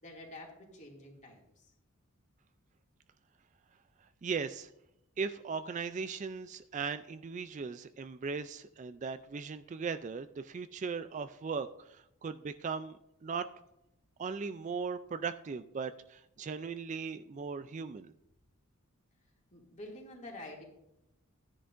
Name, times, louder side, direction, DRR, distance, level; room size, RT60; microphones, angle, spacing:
voice 1, 0.0-1.7 19.5-20.6, left 1 dB, 35° left, -1 dB, 2.4 m, -48 dB
voice 2, 4.2-4.7 5.2-13.5 14.2-18.1, right 5 dB, 35° right, 11 dB, 0.3 m, -38 dB
14.0 x 10.0 x 2.5 m, 0.84 s
head